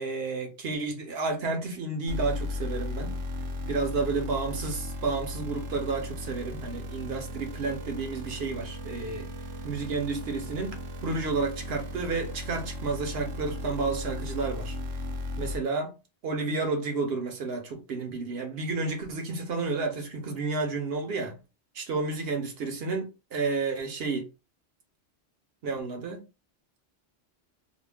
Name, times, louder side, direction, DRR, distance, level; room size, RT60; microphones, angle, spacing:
voice 1, 0.0-3.2 3.7-9.3 9.6-10.8 11.0-14.8 15.4-15.9 16.2-21.4 21.7-24.3 25.6-26.2, right 3 dB, 60° right, 0.9 m, -31 dB
sound 1, 2.1-15.6, left 1 dB, 85° right, 1.0 m, -36 dB
2.5 x 2.1 x 3.3 m
omnidirectional pair, 1.2 m